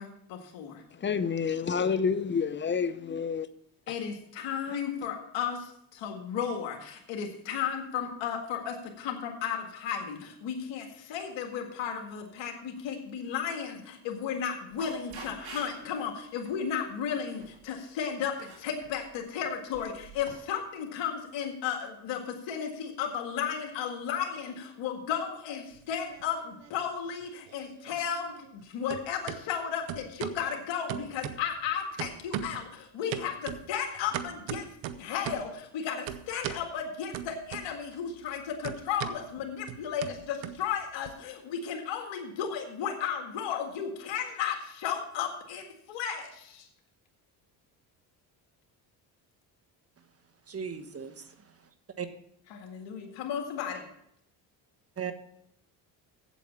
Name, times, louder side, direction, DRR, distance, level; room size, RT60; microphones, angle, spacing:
voice 1, 0.0-0.8 3.9-34.7 35.0-46.7 52.5-53.9, left 8 dB, 80° left, 1.9 m, -34 dB
voice 2, 0.9-3.5 3.9-4.0, left 6 dB, 25° left, 0.7 m, -29 dB
sound 1, 14.7-16.0 16.4-16.7 17.1-17.6 18.2-19.1 19.7-20.3, right 3 dB, 70° right, 4.1 m, -47 dB
sound 2, 25.8-26.7 27.0-28.6 28.9-29.4 29.9-30.4 30.9-31.7 32.0-32.7 33.1-35.5 36.1-36.7 37.1-38.0 38.2-41.1, right 11 dB, 90° right, 0.8 m, -39 dB
voice 3, 50.5-51.1 52.0-52.1 55.0-55.1, right 7 dB, 30° right, 1.3 m, -35 dB
8.3 x 7.8 x 7.2 m
supercardioid pair, 80°, 44 cm